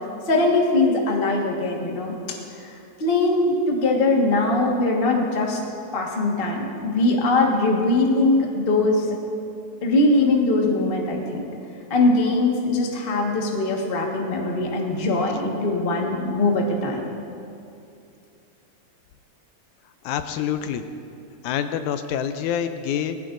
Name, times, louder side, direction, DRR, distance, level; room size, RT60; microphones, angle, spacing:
voice 1, 0.3-2.1 3.0-5.6 5.9-9.0 9.8-11.4 11.9-17.0, left 2 dB, 40° left, 0 dB, 0.8 m, -21 dB
voice 2, 20.0-20.8 21.4-23.2, left 9 dB, 80° left, 9 dB, 1.9 m, -26 dB
19.0 x 16.0 x 2.6 m, 2.6 s
omnidirectional pair, 3.5 m